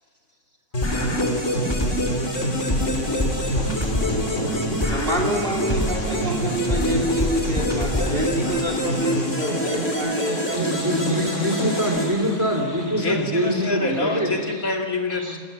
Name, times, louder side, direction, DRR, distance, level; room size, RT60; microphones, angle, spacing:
sound 1, 0.7-12.8, equal, 55° left, 3.6 m, -26 dB
sound 2, 0.8-2.2 2.7-6.2 6.7-8.8, left 1 dB, 20° left, 1.4 m, -27 dB
voice 1, 4.9-11.0, right 1 dB, 40° right, 2 dB, 2.9 m, -27 dB
voice 2, 10.5-14.3 15.1-15.4, equal, 10° right, 3 dB, 3.4 m, -24 dB
voice 3, 12.9-15.4, left 3 dB, 75° left, 2 dB, 2.7 m, -27 dB
29.5 x 17.0 x 7.0 m, 2.1 s
omnidirectional pair, 1.5 m